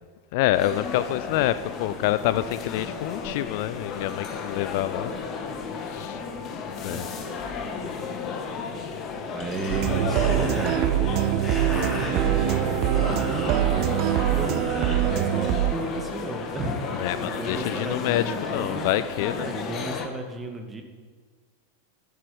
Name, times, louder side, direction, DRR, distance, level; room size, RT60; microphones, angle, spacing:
voice 1, 0.3-5.1 5.9-6.2 6.8-7.1 17.0-19.5, left 14 dB, 50° left, 15 dB, 0.5 m, -27 dB
sound 1, 0.5-20.1, left 5 dB, 30° left, 1.9 m, -33 dB
voice 2, 6.8-8.1 9.3-10.9 12.1-13.9 14.2-18.9 19.3-20.8, right 3 dB, 15° right, 4 dB, 2.2 m, -34 dB
sound 2, 9.7-15.7, right 13 dB, 40° right, 0.7 m, -24 dB
sound 3, 10.1-16.0, left 1 dB, 15° left, 3.7 m, -37 dB
11.5 x 10.5 x 9.7 m, 1.5 s
figure-of-eight pair, 90°, 0 cm